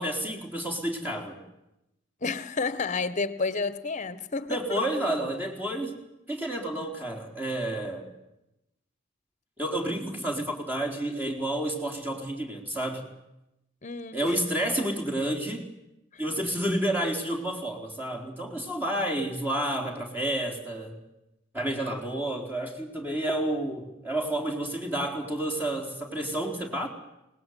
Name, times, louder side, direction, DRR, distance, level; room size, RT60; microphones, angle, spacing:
voice 1, 0.0-1.4 4.5-6.0 6.3-8.1 9.6-13.1 14.1-15.7 16.2-21.0 21.5-26.9, right 1 dB, 10° right, 4.2 m, -30 dB
voice 2, 2.2-4.8 13.8-14.4 16.1-16.2, left 4 dB, 40° left, 1.5 m, -30 dB
29.5 x 19.5 x 9.5 m
head